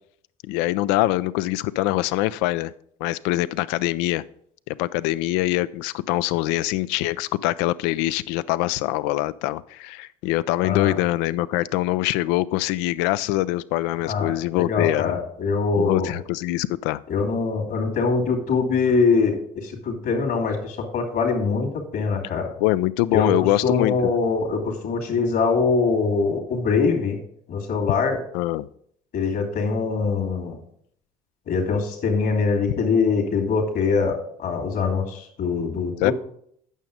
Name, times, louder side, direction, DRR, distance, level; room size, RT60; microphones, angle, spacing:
voice 1, 0.4-2.7 3.0-4.2 4.7-15.2 15.8-17.0 22.6-24.1 28.3-28.7 36.0-36.1, left 16 dB, 80° left, 17 dB, 0.4 m, -24 dB
voice 2, 10.6-11.0 14.0-16.1 17.1-22.5 23.1-23.3 23.6-27.2 27.5-28.2 29.1-30.6 31.5-36.1, left 4 dB, 65° left, 2 dB, 2.6 m, -23 dB
9.2 x 6.1 x 5.1 m, 0.68 s
supercardioid pair, 75°, 18 cm